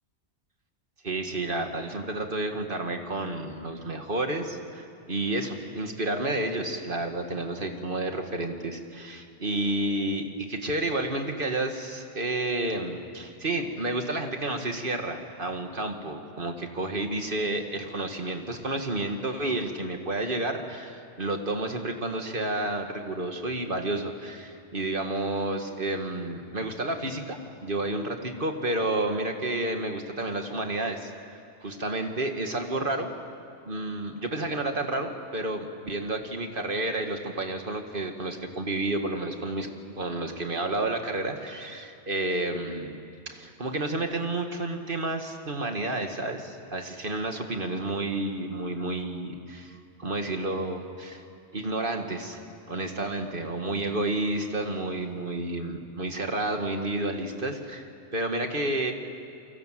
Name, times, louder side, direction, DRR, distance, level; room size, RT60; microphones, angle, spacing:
voice 1, 1.0-31.3 31.6-33.1 33.7-39.7 39.9-43.0 43.3-51.2 51.5-52.4 52.7-57.9 58.1-58.9, right 2 dB, 50° right, 4 dB, 2.2 m, -30 dB
29.0 x 23.5 x 7.7 m, 2.6 s
omnidirectional pair, 1.2 m